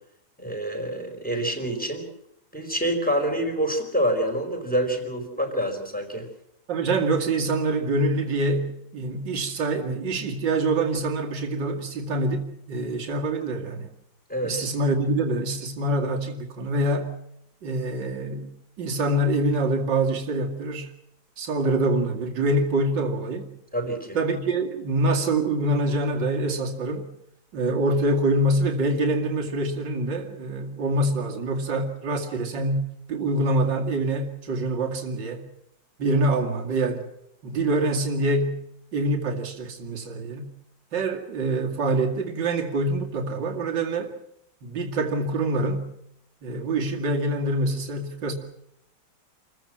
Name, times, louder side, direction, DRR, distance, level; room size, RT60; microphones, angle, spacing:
voice 1, 0.4-2.1 2.5-6.3 14.3-14.6 23.7-24.2, right 1 dB, 5° left, 4 dB, 4.5 m, -27 dB
voice 2, 6.7-13.9 14.4-17.2 17.6-18.5 18.8-20.9 21.4-23.5 24.1-27.1 27.5-32.8 33.1-35.5 36.0-37.0 37.4-38.6 38.9-40.5 40.9-44.1 44.6-45.9 46.4-48.3, right 2 dB, 70° right, 1 dB, 3.0 m, -25 dB
28.0 x 15.0 x 7.5 m, 0.76 s
omnidirectional pair, 2.0 m